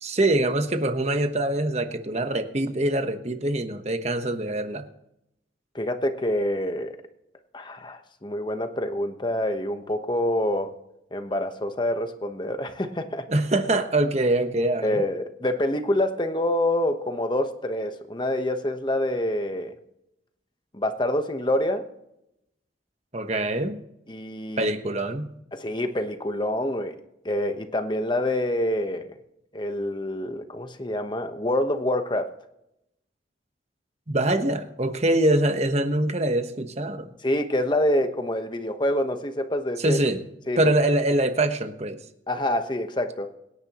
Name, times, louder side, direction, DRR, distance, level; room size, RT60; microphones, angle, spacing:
voice 1, 0.0-4.9 13.3-15.1 23.1-23.8 24.6-25.3 34.1-37.1 39.8-40.2 40.6-42.0, right 1 dB, 35° right, 8 dB, 1.1 m, -24 dB
voice 2, 5.7-7.0 7.5-10.8 11.1-13.2 14.8-19.7 20.7-21.9 24.1-24.7 25.5-26.9 27.2-29.2 29.5-32.3 37.2-40.0 40.5-40.6 42.3-43.3, left 1 dB, 25° left, 7 dB, 1.1 m, -26 dB
24.0 x 10.5 x 3.0 m, 0.82 s
head